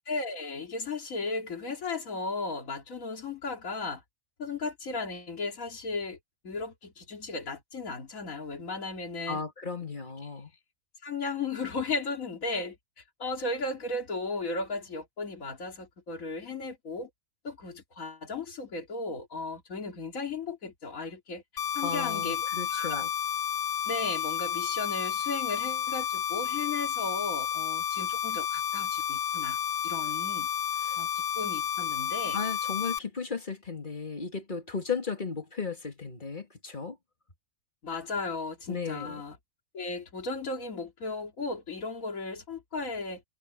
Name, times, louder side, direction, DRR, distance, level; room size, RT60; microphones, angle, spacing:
voice 1, 0.1-4.0 4.4-6.2 6.4-9.4 11.0-12.8 13.2-17.1 17.4-21.4 21.7-23.1 23.9-29.6 29.8-30.5 31.0-32.4 37.8-39.4 39.7-43.2, left 3 dB, 70° left, 2.8 m, -35 dB
voice 2, 9.3-10.5 21.8-23.1 30.8-31.0 32.3-37.0 38.7-39.2, left 5 dB, 35° left, 2.3 m, -35 dB
sound 1, 21.6-33.0, left 8 dB, 50° left, 0.8 m, -31 dB
omnidirectional pair, 1.5 m